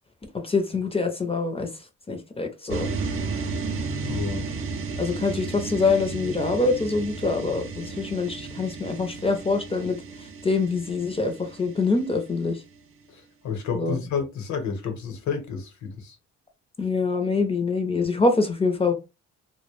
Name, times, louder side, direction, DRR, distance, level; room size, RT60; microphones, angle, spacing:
voice 1, 0.4-1.7 2.1-2.9 5.0-10.0 10.4-12.6 13.7-14.0 16.8-18.9, left 3 dB, 20° left, 0.5 m, -25 dB
sound 1, 2.7-12.8, right 4 dB, 45° right, 0.5 m, -33 dB
voice 2, 4.0-4.5 13.1-16.1, left 6 dB, 70° left, 0.9 m, -30 dB
2.2 x 2.1 x 3.0 m
cardioid pair, 90°, 30 cm